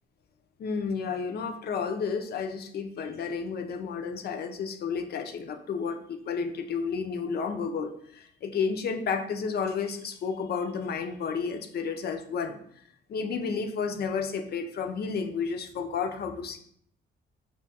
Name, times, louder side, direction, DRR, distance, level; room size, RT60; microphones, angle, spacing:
voice 1, 0.6-12.6 13.1-16.6, left 5 dB, 55° left, 6 dB, 0.4 m, -31 dB
2.8 x 2.3 x 4.1 m, 0.65 s
cardioid pair, 90°, 20 cm